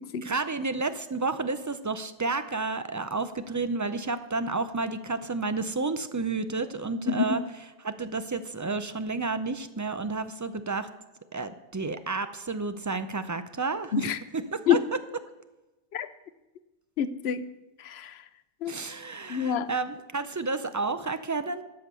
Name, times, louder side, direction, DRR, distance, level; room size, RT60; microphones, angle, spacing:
voice 1, 0.2-7.4 7.8-10.9 11.3-14.0 14.3-14.8 18.7-21.6, right 3 dB, 25° right, 11 dB, 0.4 m, -31 dB
voice 2, 17.0-17.4 17.8-18.2 18.6-18.8 19.3-19.7, left 8 dB, 85° left, 14 dB, 0.9 m, -27 dB
12.5 x 5.7 x 6.8 m, 1.1 s
omnidirectional pair, 1.0 m